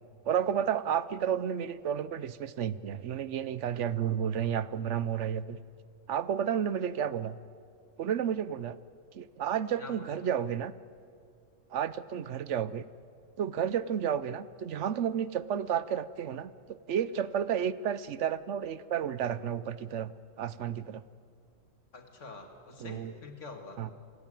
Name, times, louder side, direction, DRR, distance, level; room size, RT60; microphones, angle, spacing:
voice 1, 0.3-5.6 6.1-7.4 8.0-8.8 9.1-10.7 11.7-12.8 13.4-20.1 20.4-21.0 22.8-23.1 23.8-23.9, right 9 dB, 70° right, 16 dB, 1.0 m, -31 dB
voice 2, 9.8-10.2 21.9-23.8, left 3 dB, 70° left, 5 dB, 2.5 m, -46 dB
26.0 x 15.5 x 9.0 m, 2.3 s
omnidirectional pair, 1.3 m